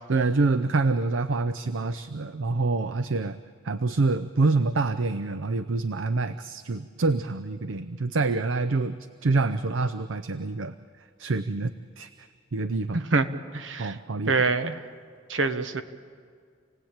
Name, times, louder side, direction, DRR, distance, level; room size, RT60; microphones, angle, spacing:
voice 1, 0.1-3.4 3.6-9.0 9.2-10.7 11.2-13.1 13.8-14.3, right 3 dB, 85° right, 10 dB, 0.6 m, -26 dB
voice 2, 12.9-13.3 13.5-13.9 14.3-14.8 15.3-15.8, right 3 dB, 70° right, 10 dB, 1.2 m, -25 dB
28.0 x 18.0 x 8.8 m, 2.1 s
head